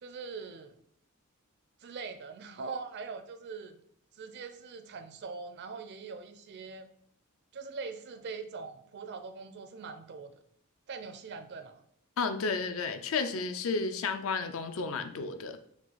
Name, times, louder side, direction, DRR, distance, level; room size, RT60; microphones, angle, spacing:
voice 1, 0.0-0.8 1.8-3.8 4.1-6.9 7.5-10.4 10.9-11.8, right 4 dB, 50° right, 9 dB, 0.4 m, -42 dB
voice 2, 12.2-15.6, left 4 dB, 65° left, 9 dB, 0.4 m, -32 dB
4.6 x 2.3 x 3.9 m, 0.66 s
head